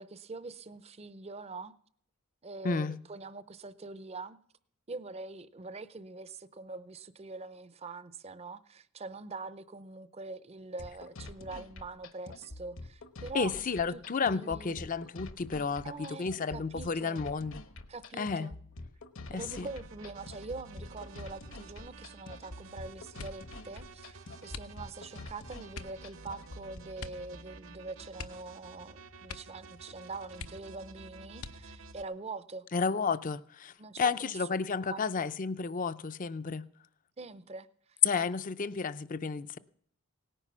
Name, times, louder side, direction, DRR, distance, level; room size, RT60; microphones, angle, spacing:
voice 1, 0.0-1.7 2.4-4.4 4.9-13.5 13.9-14.9 15.8-17.3 17.9-18.6 19.3-32.7 33.8-34.5 34.9-35.3 37.2-37.7, right 3 dB, 30° right, 0.6 m, -44 dB
voice 2, 2.6-3.0 13.3-17.6 18.2-18.5 19.3-19.7 32.7-36.6 38.0-39.6, left 5 dB, 40° left, 0.5 m, -31 dB
sound 1, 10.8-26.8, left 2 dB, 65° left, 1.2 m, -47 dB
sound 2, 19.4-32.0, right 3 dB, 65° right, 1.0 m, -51 dB
sound 3, 23.1-23.6 24.5-25.1 25.7-26.0 27.0-27.3 27.6-27.7 28.1-28.9 29.2-29.7 30.0-30.1 30.3-30.9 31.4-31.9 32.6-33.2 33.6-34.0, left 4 dB, 90° left, 0.9 m, -45 dB
18.0 x 10.0 x 6.1 m
head